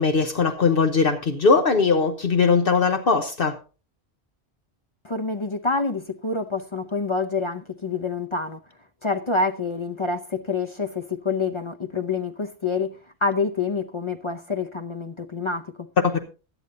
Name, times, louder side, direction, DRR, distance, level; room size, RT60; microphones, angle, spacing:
voice 1, 0.0-3.6 16.0-16.2, left 4 dB, 60° left, 1.1 m, -20 dB
voice 2, 5.0-8.6 9.0-15.9, left 4 dB, 35° left, 0.6 m, -27 dB
16.0 x 11.0 x 2.7 m
omnidirectional pair, 1.1 m